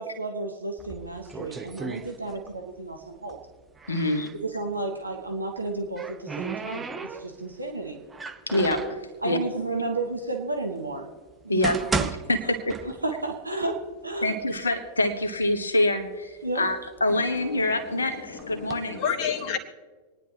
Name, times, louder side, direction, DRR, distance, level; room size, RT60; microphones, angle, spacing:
voice 1, 0.0-3.4 4.4-8.0 9.2-11.1 11.4-12.1 13.0-14.4 16.4-16.6, right 2 dB, 80° right, 3 dB, 1.3 m, -32 dB
sound 1, 0.8-2.7 3.0-4.4 5.5-7.5 8.1-9.0 9.8-9.9 10.6-10.7 11.3-13.3 13.6-13.7 14.4-14.5 14.9-15.5 16.1-17.8 18.4-18.7, right 4 dB, 15° right, 0.8 m, -35 dB
voice 2, 3.9-4.3 8.5-9.4 11.5-11.8 12.3-12.8 14.2-19.0, left 1 dB, 75° left, 6 dB, 1.3 m, -26 dB
voice 3, 17.1-19.6, left 7 dB, 45° left, 7 dB, 1.5 m, -32 dB
26.5 x 10.0 x 3.0 m, 1.4 s
figure-of-eight pair, 90°, 0 cm